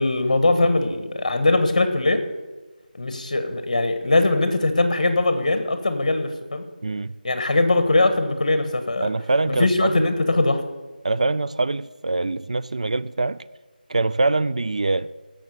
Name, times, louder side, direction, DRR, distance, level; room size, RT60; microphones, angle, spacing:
voice 1, 0.0-2.2 3.0-6.6 7.2-9.1 9.5-10.6, left 2 dB, 45° left, 1.5 m, -21 dB
voice 2, 6.8-7.1 9.0-10.1 11.0-13.4 13.9-15.1, right 3 dB, 45° right, 0.4 m, -23 dB
16.0 x 6.5 x 6.7 m
figure-of-eight pair, 170°, 5 cm